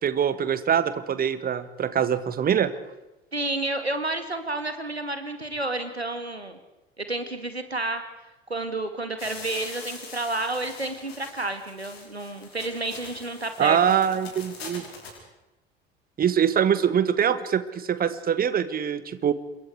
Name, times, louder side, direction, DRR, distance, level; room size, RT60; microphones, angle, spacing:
voice 1, 0.0-2.7 13.6-14.9 16.2-19.3, right 8 dB, 30° right, 14 dB, 1.7 m, -23 dB
voice 2, 3.3-6.6 7.0-8.0 8.5-13.8, right 2 dB, 90° right, 8 dB, 2.2 m, -30 dB
sound 1, 9.2-15.2, left 4 dB, 70° left, 5.5 m, -43 dB
27.5 x 23.0 x 4.9 m, 1.0 s
figure-of-eight pair, 70°, 31 cm